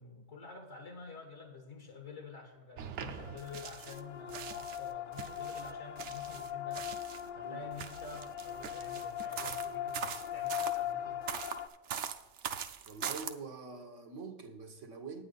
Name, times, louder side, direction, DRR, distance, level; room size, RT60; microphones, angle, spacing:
voice 1, 0.0-6.9 7.3-11.2, left 3 dB, 75° left, 1.7 m, -49 dB
sound 1, 2.8-4.0 4.3-7.3 7.7-10.8 11.3-13.3, right 8 dB, 75° right, 1.0 m, -42 dB
sound 2, 3.1-11.7, left 10 dB, 55° left, 0.6 m, -40 dB
voice 2, 12.8-15.2, right 4 dB, 90° right, 1.7 m, -45 dB
10.0 x 9.3 x 4.0 m
omnidirectional pair, 1.2 m